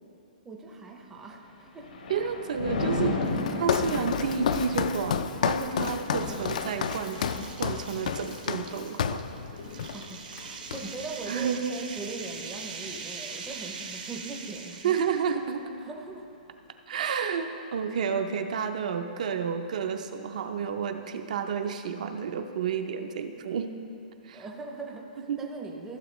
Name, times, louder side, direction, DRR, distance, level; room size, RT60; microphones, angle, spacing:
voice 1, 0.4-2.1 6.2-6.6 9.9-15.0 15.8-16.3 24.3-26.0, right 3 dB, 5° right, 0 dB, 0.6 m, -40 dB
Thunder, 1.5-13.0 13.4-13.8, left 3 dB, 70° left, 1.1 m, -36 dB
voice 2, 2.1-3.1 3.6-7.3 7.6-9.2 9.7-9.9 11.3-11.7 14.8-15.6 16.9-23.7 24.2-24.4 25.3-25.5, right 6 dB, 55° right, 6 dB, 0.6 m, -30 dB
sound 1, 3.1-3.5 4.0-4.1 5.1-15.2, right 5 dB, 75° right, 1.4 m, -42 dB
Walk footsteps, 3.3-9.3 9.8-10.0 10.3-11.1, left 7 dB, 55° left, 0.4 m, -30 dB
15.0 x 7.1 x 3.1 m, 2.7 s
hypercardioid pair, 170°, 5 cm